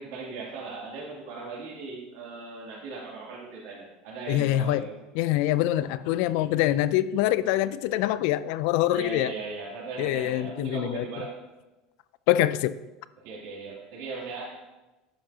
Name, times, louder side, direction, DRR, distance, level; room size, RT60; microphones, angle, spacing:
voice 1, 0.0-5.0 8.9-11.4 13.2-14.6, right 4 dB, 80° right, 2.7 m, -38 dB
voice 2, 4.3-4.9 5.1-9.3 10.0-11.0 12.3-12.7, left 13 dB, 70° left, 0.3 m, -25 dB
11.0 x 6.1 x 2.8 m
supercardioid pair, 125°, 0 cm